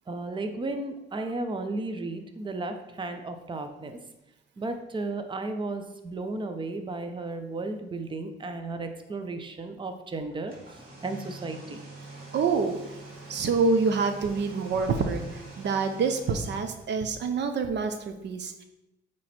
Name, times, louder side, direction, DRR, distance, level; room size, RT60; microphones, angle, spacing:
voice 1, 0.1-4.0 4.6-11.8, right 2 dB, 25° right, 7 dB, 0.7 m, -34 dB
sound 1, 10.3-17.1, right 2 dB, 45° right, 2.2 m, -45 dB
voice 2, 12.3-12.8 13.3-18.6, right 4 dB, 60° right, 7 dB, 0.7 m, -27 dB
8.6 x 3.1 x 4.3 m, 0.92 s
cardioid pair, 90°, 20 cm